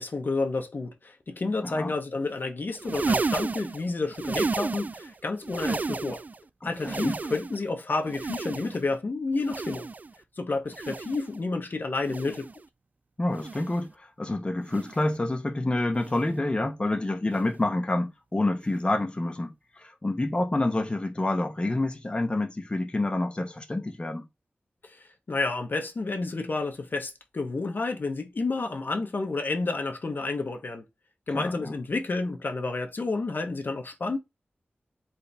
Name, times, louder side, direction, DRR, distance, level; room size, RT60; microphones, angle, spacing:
voice 1, 0.0-6.2 6.6-9.9 10.4-12.5 24.8-30.8 31.3-34.2, left 3 dB, 55° left, 1.0 m, -30 dB
voice 2, 1.6-2.0 6.6-7.2 13.2-24.3 31.3-31.7, left 2 dB, 25° left, 0.9 m, -28 dB
sound 1, 2.7-5.1 5.4-6.4 6.7-7.7 8.1-8.9 9.4-10.1 10.7-11.4 12.0-12.6 13.3-13.9 14.7-15.1 16.0-16.3 17.3-17.5 18.7-18.8, right 4 dB, 40° right, 0.3 m, -32 dB
4.3 x 3.6 x 3.4 m
wide cardioid pair, 90°, 4 cm